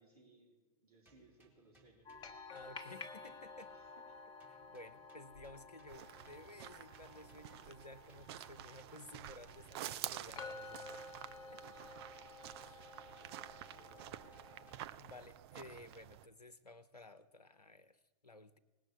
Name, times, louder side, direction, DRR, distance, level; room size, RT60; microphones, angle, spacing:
voice 1, 0.0-2.1 3.7-4.2 13.0-14.3, right 2 dB, 70° right, -1 dB, 3.6 m, -66 dB
sound 1, 1.0-4.1 4.4-7.7 8.1-11.4 11.8-15.1, right 2 dB, 10° right, 1.9 m, -71 dB
sound 2, 2.1-14.8, left 4 dB, 20° left, 1.0 m, -53 dB
voice 2, 2.5-3.7 4.5-11.2 11.5-11.8 12.6-13.2 15.0-18.6, left 2 dB, 90° left, 12 dB, 0.7 m, -55 dB
sound 3, 5.9-16.3, right 12 dB, 40° right, 0.5 m, -50 dB
18.0 x 6.3 x 8.3 m, 1.2 s
figure-of-eight pair, 105°, 20 cm